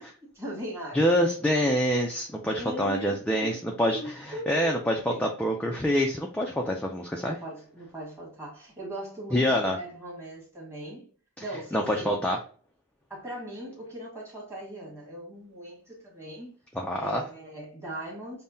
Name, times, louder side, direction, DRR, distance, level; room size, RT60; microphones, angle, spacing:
voice 1, 0.3-1.3 2.5-3.6 3.9-4.8 5.1-5.3 7.2-11.0 11.4-12.1 13.1-16.5 17.0-18.4, right 1 dB, 10° right, 1.4 m, -39 dB
voice 2, 0.9-7.4 9.3-9.8 11.7-12.4 16.8-17.2, equal, 5° left, 0.3 m, -26 dB
5.5 x 2.1 x 2.6 m
head